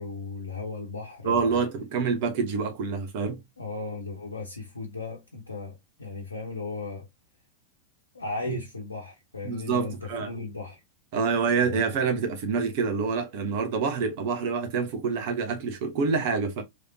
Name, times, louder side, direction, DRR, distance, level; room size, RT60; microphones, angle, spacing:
voice 1, 0.0-1.6 3.6-7.1 8.1-10.8 11.6-11.8, left 3 dB, 85° left, 0.9 m, -36 dB
voice 2, 1.2-3.4 8.5-8.6 9.4-10.3 11.1-16.6, right 5 dB, 55° right, 1.1 m, -27 dB
3.4 x 3.2 x 2.7 m
figure-of-eight pair, 90°, 0 cm